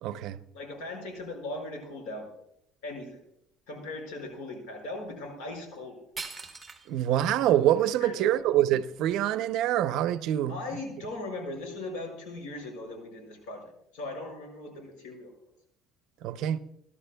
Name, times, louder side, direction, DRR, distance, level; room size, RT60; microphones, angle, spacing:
voice 1, 0.0-0.4 6.9-10.6 16.2-16.6, right 12 dB, 65° right, 0.5 m, -25 dB
voice 2, 0.5-2.3 2.8-3.2 3.7-6.0 8.0-8.4 10.5-13.6 13.9-15.3, left 2 dB, 90° left, 5.3 m, -39 dB
sound 1, 6.2-7.1 7.7-7.8 8.4-9.7, right 4 dB, 15° right, 1.4 m, -43 dB
20.0 x 12.0 x 2.3 m
cardioid pair, 130°, 0 cm